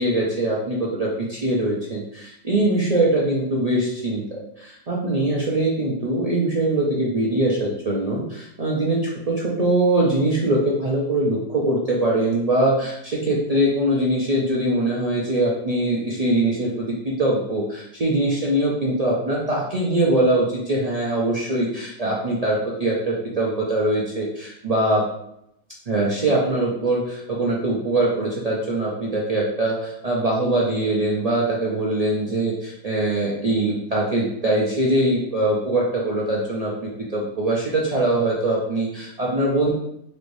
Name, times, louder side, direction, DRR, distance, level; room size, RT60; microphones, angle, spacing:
voice 1, 0.0-25.0 25.9-39.7, right 1 dB, 50° right, -5 dB, 0.4 m, -22 dB
4.2 x 3.2 x 2.6 m, 0.78 s
omnidirectional pair, 1.4 m